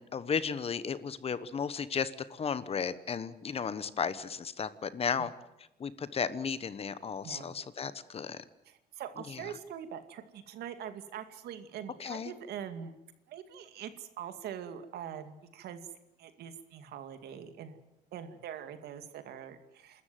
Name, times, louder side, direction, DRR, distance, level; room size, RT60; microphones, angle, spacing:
voice 1, 0.0-5.3 5.8-8.4 12.0-12.3, left 6 dB, 35° left, 15 dB, 1.2 m, -34 dB
voice 2, 7.2-7.6 8.6-13.0 13.3-15.8 16.2-17.8 18.1-20.0, right 9 dB, 70° right, 9 dB, 2.3 m, -43 dB
28.0 x 13.5 x 9.2 m, 0.91 s
cardioid pair, 110°, 17 cm